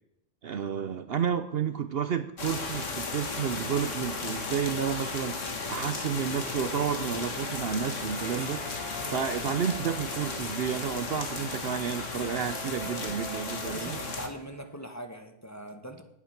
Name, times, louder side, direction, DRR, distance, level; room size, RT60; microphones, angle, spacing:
voice 1, 0.4-8.6 9.1-14.0, right 7 dB, 60° right, 10 dB, 0.8 m, -31 dB
sound 1, 2.4-14.3, left 4 dB, 80° left, 2.1 m, -35 dB
sound 2, 8.1-14.9, right 1 dB, 30° right, 2.4 m, -46 dB
voice 2, 13.6-16.0, right 1 dB, 15° left, 5 dB, 1.4 m, -41 dB
19.0 x 8.3 x 5.9 m, 0.82 s
omnidirectional pair, 1.3 m